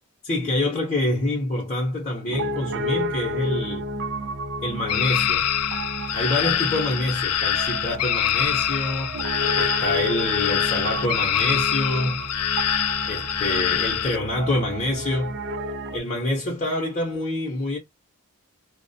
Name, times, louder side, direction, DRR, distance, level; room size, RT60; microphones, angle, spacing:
voice 1, 0.2-3.9 4.6-5.5 6.1-9.2 9.5-12.2 13.1-15.4 15.9-17.8, left 1 dB, 35° left, 0.6 m, -26 dB
Piano, 2.3-16.0, right 1 dB, 50° right, 0.4 m, -31 dB
sound 1, 4.9-14.2, left 10 dB, 75° left, 0.3 m, -25 dB
2.4 x 2.0 x 2.5 m
head